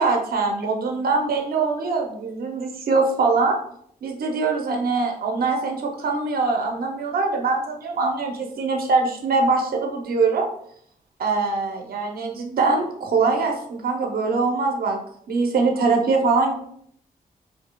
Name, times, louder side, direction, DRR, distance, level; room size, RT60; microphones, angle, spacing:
voice 1, 0.0-3.6 4.0-10.5 11.2-15.0 15.3-16.5, right 4 dB, 80° right, 2 dB, 0.7 m, -22 dB
4.6 x 2.7 x 2.2 m, 0.66 s
wide cardioid pair, 150°, 15 cm